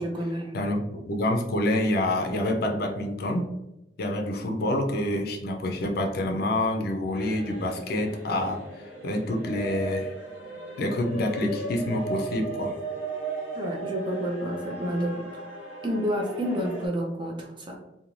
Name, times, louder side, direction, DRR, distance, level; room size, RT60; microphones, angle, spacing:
voice 1, 0.0-0.5 13.5-15.3 15.8-17.7, equal, 30° right, -1 dB, 0.5 m, -29 dB
voice 2, 0.5-3.5 4.0-10.1 10.8-12.8, left 1 dB, 60° left, 3 dB, 0.4 m, -27 dB
sound 1, 7.1-16.9, right 2 dB, 10° right, 0.9 m, -37 dB
2.5 x 2.1 x 3.0 m, 0.91 s
head